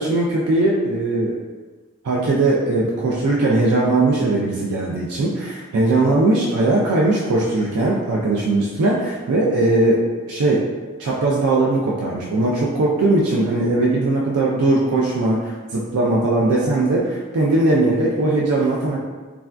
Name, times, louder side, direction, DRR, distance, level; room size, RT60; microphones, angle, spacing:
voice 1, 0.0-1.4 2.0-10.6 11.0-19.0, right 2 dB, 85° right, -4 dB, 0.4 m, -19 dB
3.4 x 2.2 x 2.4 m, 1.3 s
head